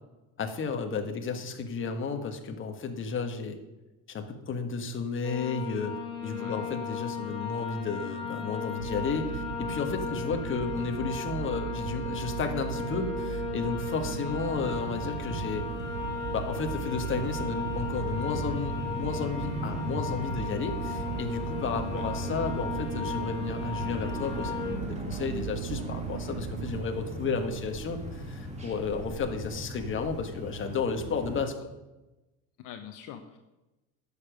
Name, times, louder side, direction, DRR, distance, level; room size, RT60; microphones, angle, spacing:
voice 1, 0.4-3.6 4.1-15.7 16.3-31.7, left 5 dB, 30° left, 5 dB, 1.4 m, -33 dB
sound 1, 5.2-24.8, left 7 dB, 15° left, 1.3 m, -37 dB
voice 2, 6.3-6.6 14.1-14.4 21.8-22.0 32.6-33.4, left 10 dB, 60° left, 6 dB, 0.9 m, -44 dB
sound 2, 8.8-26.8, right 12 dB, 70° right, 0.7 m, -37 dB
sound 3, 14.5-31.4, equal, 20° right, 2.2 m, -39 dB
9.9 x 7.0 x 6.3 m, 1.0 s
cardioid pair, 125°, 37 cm